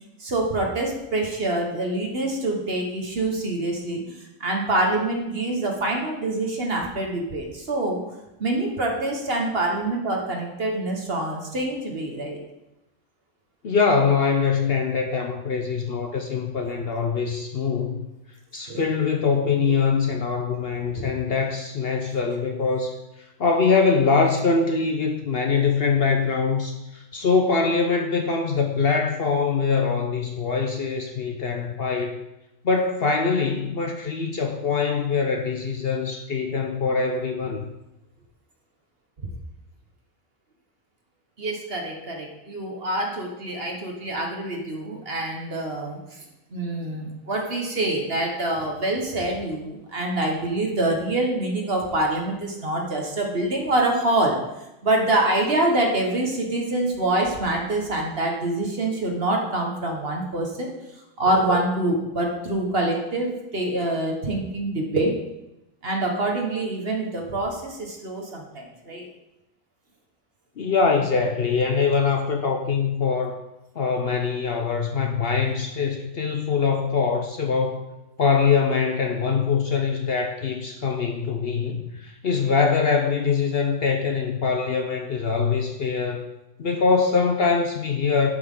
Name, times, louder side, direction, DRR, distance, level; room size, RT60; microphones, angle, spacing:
voice 1, 0.2-8.0 8.4-12.4 18.7-18.8 21.0-21.1 41.4-46.0 46.5-54.4 54.8-60.7 61.2-65.1 65.8-69.1, right 2 dB, 45° right, 1 dB, 1.6 m, -25 dB
voice 2, 13.6-18.0 18.5-23.0 23.4-32.2 32.6-37.6 70.6-73.4 73.8-77.8 78.2-86.3 86.6-88.3, left 5 dB, 55° left, 3 dB, 0.9 m, -23 dB
11.0 x 6.1 x 3.8 m, 0.92 s
omnidirectional pair, 1.4 m